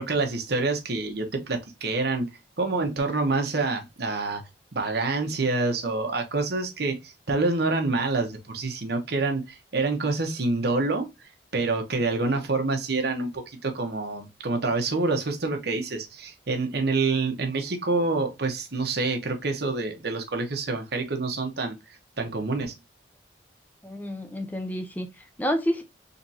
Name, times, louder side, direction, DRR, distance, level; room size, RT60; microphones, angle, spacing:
voice 1, 0.0-2.3 2.6-4.4 4.7-21.8 22.2-22.7, right 3 dB, 60° right, 0.9 m, -27 dB
voice 2, 23.8-25.8, equal, 10° left, 0.5 m, -29 dB
4.0 x 3.1 x 2.7 m
head